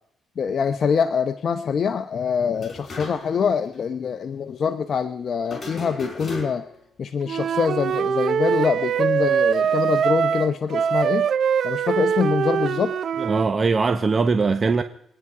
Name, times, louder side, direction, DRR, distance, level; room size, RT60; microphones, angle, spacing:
voice 1, 0.4-6.6 7.0-11.3 11.6-12.9, left 6 dB, 50° left, 0.8 m, -24 dB
sound 1, 2.5-3.5 3.7-3.8 5.5-6.8, left 1 dB, 35° left, 5.1 m, -36 dB
Wind instrument woodwind instrument, 7.3-13.5, right 7 dB, 60° right, 0.5 m, -22 dB
voice 2, 13.2-14.8, right 4 dB, 35° right, 0.8 m, -21 dB
24.0 x 9.6 x 4.9 m
cardioid pair, 90°, 0 cm